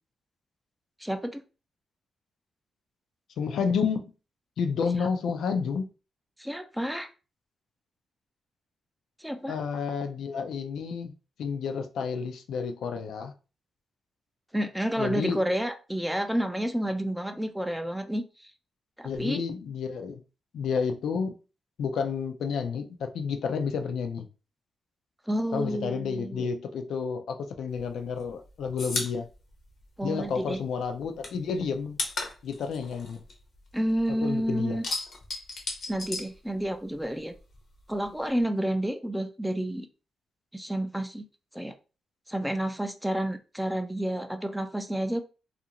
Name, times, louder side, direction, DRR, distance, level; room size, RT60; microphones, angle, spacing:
voice 1, 1.0-1.4 6.4-7.1 9.2-9.5 14.5-18.2 19.0-19.4 25.3-26.5 30.0-30.6 33.7-34.8 35.9-37.3 37.9-39.9 40.5-41.3 41.5-41.7 42.3-45.2, right 1 dB, 5° right, 0.3 m, -30 dB
voice 2, 3.4-4.1 4.6-5.9 9.5-11.1 11.4-13.3 15.0-15.4 19.0-20.2 20.5-21.3 21.8-24.3 25.5-29.3 30.0-32.0 32.4-33.2 34.1-34.8, left 6 dB, 80° left, 0.4 m, -30 dB
sound 1, 27.7-30.5 30.8-34.1 34.4-37.0 37.3-38.4, left 3 dB, 60° left, 0.8 m, -36 dB
2.5 x 2.3 x 2.8 m
cardioid pair, 120°, 0 cm